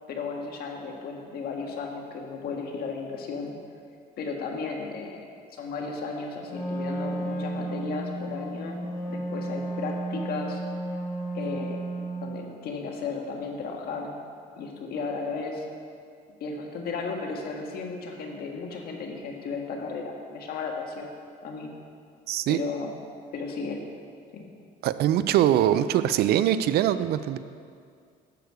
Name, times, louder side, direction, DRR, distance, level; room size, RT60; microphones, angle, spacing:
voice 1, 0.1-3.5 4.2-5.2 5.5-10.6 11.3-11.8 12.2-14.2 14.6-15.6 16.4-21.1 21.4-21.7 22.5-22.9 23.3-23.8 24.3-24.4, left 4 dB, 65° left, 1 dB, 1.7 m, -34 dB
Wind instrument woodwind instrument, 6.4-12.4, right 2 dB, 85° left, 3.1 m, -33 dB
voice 2, 22.3-22.6 24.8-27.4, right 11 dB, 70° right, 13 dB, 0.5 m, -22 dB
11.5 x 8.0 x 4.9 m, 2.2 s
cardioid pair, 110°, 17 cm